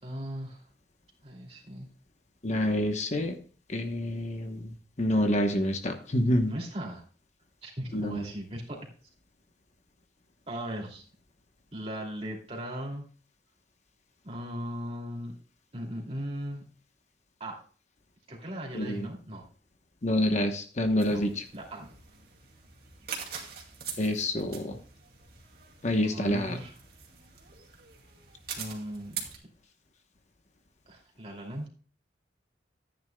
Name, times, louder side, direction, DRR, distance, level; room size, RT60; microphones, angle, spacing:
voice 1, 0.0-0.6 1.2-1.9 6.5-7.0 7.6-8.8 10.5-11.0 11.7-13.1 14.2-15.3 15.7-16.6 17.4-17.6 18.3-19.5 21.1-21.2 21.5-21.9 26.0-26.7 28.6-29.4 30.9-31.7, equal, 35° right, -1 dB, 2.7 m, -38 dB
voice 2, 2.4-3.4 3.7-4.6 5.0-6.5 7.9-8.2 18.7-19.1 20.0-21.4 24.0-24.8 25.8-26.6, left 1 dB, 40° left, 6 dB, 1.0 m, -27 dB
sound 1, 21.0-29.4, right 7 dB, 60° right, 2.4 m, -44 dB
14.5 x 9.5 x 2.3 m, 0.41 s
head